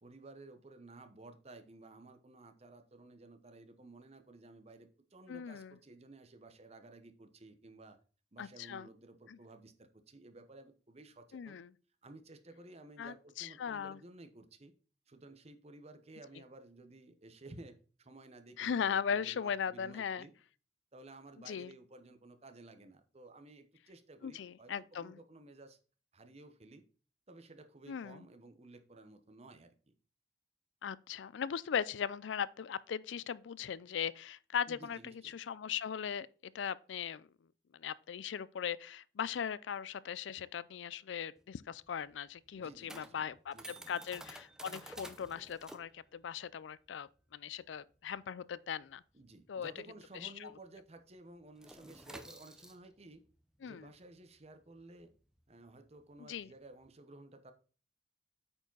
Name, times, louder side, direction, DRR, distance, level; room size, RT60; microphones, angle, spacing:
voice 1, 0.0-8.0 8.3-11.6 12.0-14.7 15.1-20.3 20.9-24.7 25.0-25.8 26.1-26.8 27.3-29.9 34.7-35.3 42.5-43.9 49.1-53.2 53.6-55.1 55.5-57.5, right 2 dB, 35° right, 0.9 m, -55 dB
voice 2, 5.3-5.7 8.4-8.9 9.3-9.4 11.3-11.7 13.0-14.0 18.6-20.3 21.5-21.7 24.2-25.2 27.9-28.2 30.8-36.3 36.5-37.3 37.7-49.0 49.5-49.7 50.2-50.5 53.6-53.9 56.2-56.5, left 7 dB, 80° left, 0.4 m, -39 dB
sound 1, 41.4-50.3 50.6-50.9 51.1-56.9, right 1 dB, 5° right, 0.6 m, -53 dB
8.6 x 5.0 x 3.9 m
head